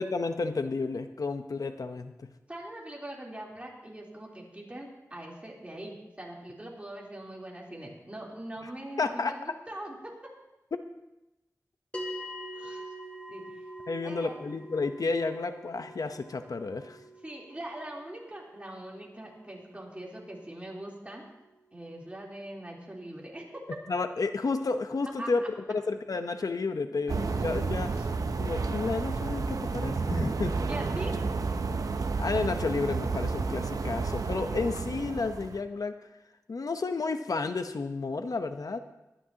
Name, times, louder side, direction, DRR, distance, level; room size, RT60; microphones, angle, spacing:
voice 1, 0.0-2.3 9.0-9.3 13.9-17.0 23.9-25.4 25.7-27.9 28.3-30.6 32.2-35.9 36.5-38.8, left 3 dB, 75° left, 8 dB, 0.8 m, -31 dB
voice 2, 2.5-10.3 12.5-12.9 13.3-13.6 14.0-14.4 17.2-21.2 21.7-23.8 25.2-25.5 27.3-27.5 27.9-28.1 30.6-31.2, right 1 dB, 20° right, -3 dB, 3.5 m, -42 dB
sound 1, 11.9-22.5, equal, 20° left, 2.3 m, -45 dB
sound 2, 27.1-35.6, right 4 dB, 75° right, 0.7 m, -31 dB
23.5 x 10.0 x 2.9 m, 0.96 s
wide cardioid pair, 55°, 6 cm